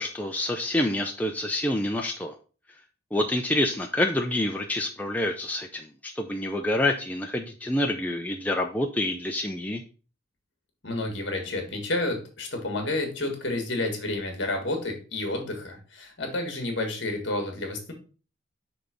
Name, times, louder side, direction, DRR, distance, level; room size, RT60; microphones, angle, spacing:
voice 1, 0.0-2.3 3.1-9.8, left 1 dB, 10° left, 2 dB, 0.4 m, -27 dB
voice 2, 10.8-17.9, left 2 dB, 55° left, 3 dB, 1.8 m, -30 dB
6.0 x 3.5 x 5.0 m, 0.36 s
head